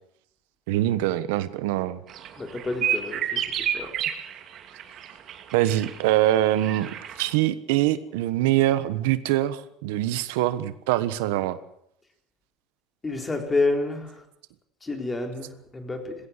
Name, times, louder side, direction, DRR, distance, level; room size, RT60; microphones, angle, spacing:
voice 1, 0.7-2.0 5.5-11.6, right 14 dB, 90° right, 1.3 m, -24 dB
sound 1, 2.1-7.3, right 9 dB, 45° right, 2.8 m, -30 dB
voice 2, 2.4-3.4 3.7-3.9 13.0-14.1 14.8-16.2, left 3 dB, 15° left, 4.0 m, -28 dB
21.0 x 16.5 x 8.3 m
cardioid pair, 130°, 0 cm